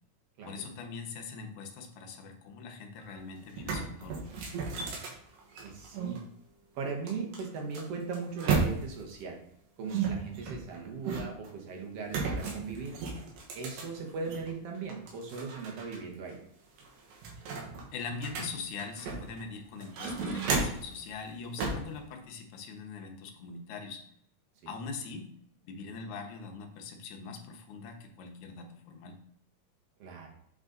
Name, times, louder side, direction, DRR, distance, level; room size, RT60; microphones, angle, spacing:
voice 1, 0.5-4.2 17.9-24.0 24.7-25.3 25.6-29.2, left 4 dB, 70° left, 3 dB, 2.2 m, -42 dB
sound 1, 3.0-3.1 3.4-6.2 7.1-9.1 9.9-11.5 12.1-14.5 14.9-16.0 16.3-16.4 16.8-19.4 19.8-20.9 21.6-21.9, right 4 dB, 90° right, 3.0 m, -34 dB
voice 2, 5.6-6.2 6.8-9.4 9.8-12.9 13.6-16.4 24.6-24.8 30.0-30.3, right 4 dB, 60° right, 1 dB, 1.8 m, -38 dB
7.9 x 4.0 x 3.8 m, 0.70 s
omnidirectional pair, 3.8 m